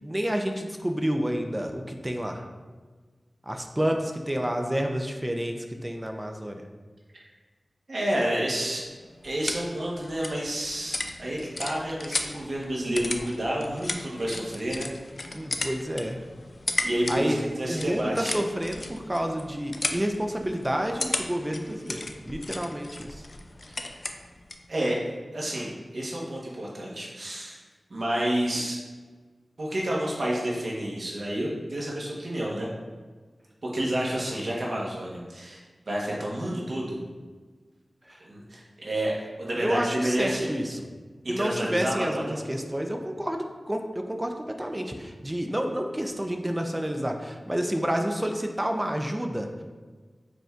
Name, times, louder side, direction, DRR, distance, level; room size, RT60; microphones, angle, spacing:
voice 1, 0.0-2.4 3.4-6.6 15.3-16.2 16.8-17.4 17.7-23.2 38.1-38.2 39.6-40.8 41.3-49.6, equal, 20° right, 4 dB, 0.4 m, -29 dB
voice 2, 7.9-8.9 9.2-14.9 16.8-18.3 23.7-24.0 24.7-25.0 25.3-27.6 27.9-28.8 29.6-32.7 33.6-37.0 38.2-40.5 41.2-42.4, right 1 dB, 70° right, -4 dB, 1.0 m, -30 dB
sound 1, 8.8-24.7, left 2 dB, 60° left, 0.3 m, -36 dB
5.0 x 3.2 x 2.4 m, 1.4 s
cardioid pair, 40°, 0 cm